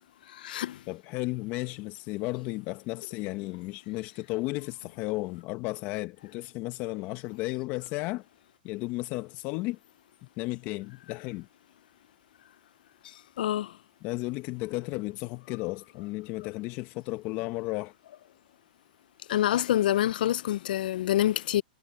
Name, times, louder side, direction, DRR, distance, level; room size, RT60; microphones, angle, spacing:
voice 1, 0.3-0.8 13.4-13.7 19.3-21.6, left 12 dB, 65° left, 0.5 m, -26 dB
voice 2, 0.9-8.2 8.6-9.8 10.4-11.5 14.0-17.9, left 21 dB, 40° left, 0.9 m, -34 dB
hypercardioid pair, 135°, 5 cm